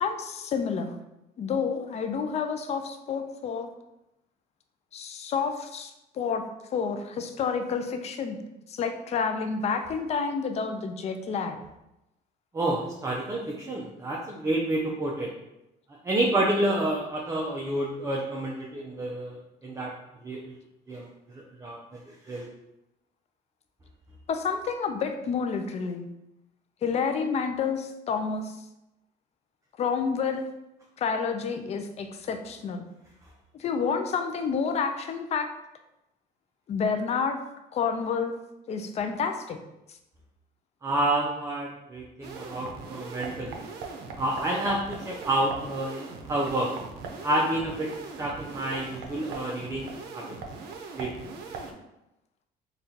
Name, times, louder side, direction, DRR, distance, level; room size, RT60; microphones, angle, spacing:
voice 1, 0.0-1.0 1.4-3.7 4.9-6.4 6.7-8.4 8.7-11.6 24.3-26.1 26.8-28.6 29.8-30.5 31.0-32.8 33.5-35.5 36.7-37.4 37.7-38.3 38.7-39.6, left 5 dB, 40° left, 7 dB, 0.4 m, -29 dB
voice 2, 12.5-15.3 15.9-19.9 20.2-20.5 20.9-22.5 40.8-43.6 44.2-46.7 47.2-47.9 48.2-50.4 51.0-51.1, right 1 dB, 15° right, -3 dB, 0.5 m, -29 dB
sound 1, 42.2-51.7, right 4 dB, 80° right, 0.5 m, -40 dB
3.6 x 2.3 x 2.7 m, 0.90 s
cardioid pair, 110°, 17 cm